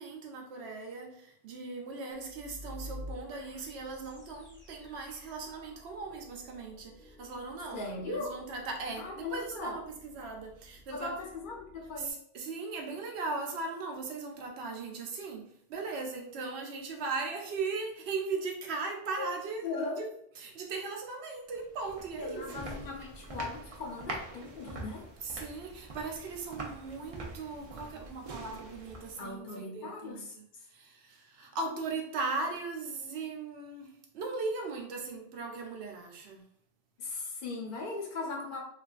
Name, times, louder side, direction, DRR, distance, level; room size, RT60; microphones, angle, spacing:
voice 1, 0.0-11.1 12.0-19.6 20.0-20.1 20.4-22.7 25.2-30.4 30.7-36.4, right 3 dB, 90° right, 2 dB, 0.9 m, -38 dB
sound 1, 2.1-12.1, equal, 15° left, 0.4 m, -51 dB
voice 2, 7.7-8.3 9.0-9.8 10.9-12.2 19.2-19.3 19.6-20.1 22.2-25.0 29.2-30.3 37.0-38.6, left 3 dB, 55° left, 0 dB, 0.8 m, -38 dB
sound 2, 21.5-29.4, right 2 dB, 45° right, 0.5 m, -44 dB
3.2 x 2.3 x 2.3 m, 0.69 s
omnidirectional pair, 1.0 m